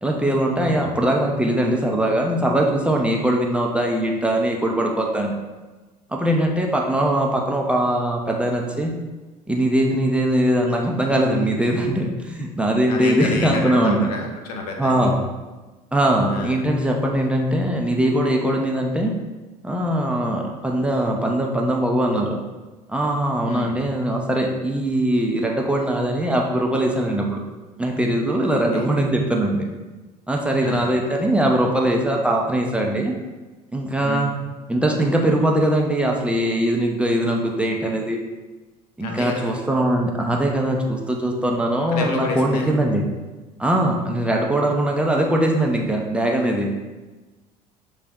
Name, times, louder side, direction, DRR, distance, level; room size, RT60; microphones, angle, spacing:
voice 1, 0.0-5.3 6.1-8.9 9.5-14.1 14.8-15.2 15.9-19.1 19.6-22.4 22.9-27.4 27.8-29.7 30.3-33.1 33.7-34.3 34.7-38.2 39.0-43.1 43.6-46.7, right 1 dB, 5° right, 0 dB, 0.7 m, -21 dB
voice 2, 0.5-0.9 12.9-15.1 16.3-16.6 23.5-23.7 28.7-28.9 30.6-30.8 34.0-34.3 39.0-39.6 41.8-42.7, left 3 dB, 75° left, 2 dB, 0.7 m, -29 dB
6.7 x 3.2 x 2.4 m, 1.2 s
hypercardioid pair, 65°, 20 cm